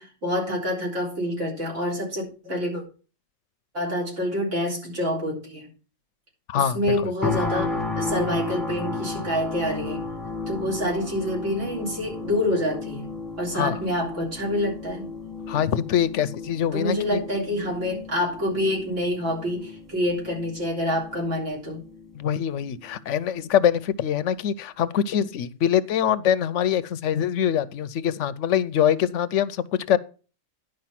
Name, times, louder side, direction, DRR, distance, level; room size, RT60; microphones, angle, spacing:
voice 1, 0.0-2.8 3.7-5.7 6.6-10.0 10.5-13.1 13.4-15.1 16.7-21.8, left 1 dB, 65° right, 3.9 m, -27 dB
sound 1, 7.2-22.2 22.7-22.9, left 3 dB, ahead, 1.2 m, -34 dB
voice 2, 15.5-17.2 22.1-30.0, left 9 dB, 70° left, 0.9 m, -24 dB
10.5 x 5.1 x 5.8 m
omnidirectional pair, 1.4 m